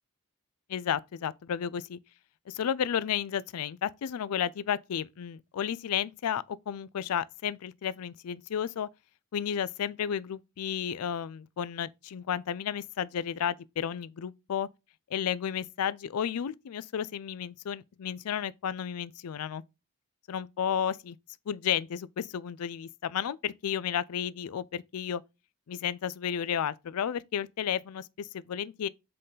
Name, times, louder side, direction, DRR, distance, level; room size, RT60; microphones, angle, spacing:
voice 1, 0.7-2.0 2.5-8.9 9.3-14.7 15.1-19.6 20.3-21.2 21.5-25.2 25.7-28.9, left 8 dB, 90° left, 0.4 m, -32 dB
7.6 x 3.8 x 3.9 m
head